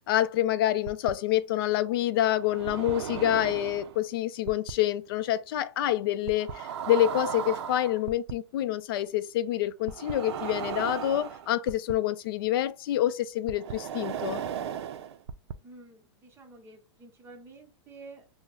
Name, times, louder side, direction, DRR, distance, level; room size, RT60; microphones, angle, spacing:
voice 1, 0.1-14.4, left 12 dB, 55° left, 0.4 m, -27 dB
sound 1, 0.9-1.1 2.4-4.0 4.5-4.7 6.3-8.3 9.9-11.9 13.5-15.5, right 8 dB, 70° right, 0.4 m, -35 dB
voice 2, 15.6-18.3, right 3 dB, 15° right, 0.9 m, -50 dB
3.0 x 2.0 x 3.7 m
hypercardioid pair, 150°, 15 cm